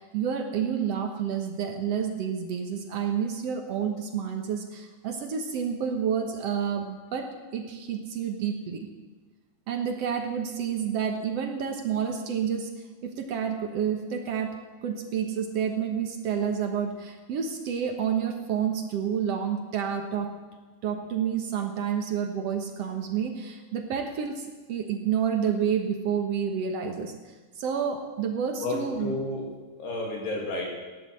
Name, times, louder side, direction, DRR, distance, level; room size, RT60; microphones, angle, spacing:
voice 1, 0.0-8.9 9.7-20.4 20.8-29.1, right 7 dB, 65° right, 4 dB, 1.6 m, -29 dB
voice 2, 28.6-29.4 29.8-30.7, left 2 dB, 85° left, -1 dB, 4.6 m, -31 dB
17.0 x 11.0 x 7.7 m, 1.4 s
omnidirectional pair, 4.5 m